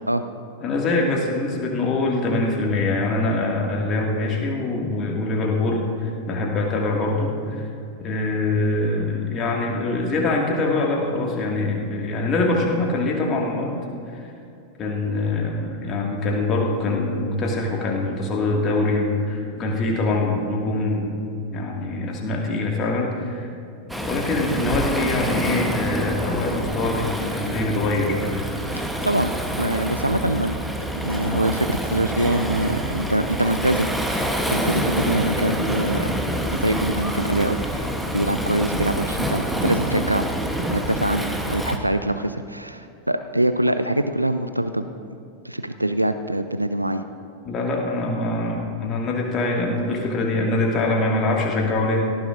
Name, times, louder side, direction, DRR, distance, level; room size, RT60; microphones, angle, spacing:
voice 1, 0.6-7.7 8.0-13.7 14.8-21.1 21.5-23.5 24.0-28.2 47.5-52.1, left 2 dB, 30° left, -1 dB, 2.1 m, -24 dB
Waves surf, 23.9-41.8, equal, ahead, 1.0 m, -27 dB
voice 2, 28.7-30.6 30.9-36.1 36.5-37.9 38.1-40.3 40.6-44.9 45.4-47.0, right 1 dB, 85° right, 10 dB, 0.4 m, -24 dB
18.0 x 14.0 x 2.6 m, 2.6 s
figure-of-eight pair, 90°, 0 cm